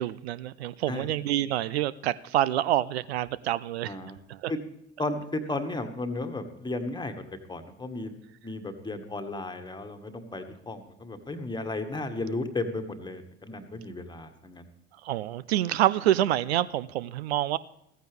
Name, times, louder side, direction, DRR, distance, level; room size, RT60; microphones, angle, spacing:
voice 1, 0.0-4.0 4.3-4.5 15.0-17.6, right 13 dB, 70° right, 0.5 m, -27 dB
voice 2, 3.8-4.2 4.5-4.6 5.0-7.2 7.5-8.1 8.4-14.6, left 2 dB, 15° left, 1.7 m, -34 dB
15.5 x 14.5 x 3.5 m
figure-of-eight pair, 60°, 33 cm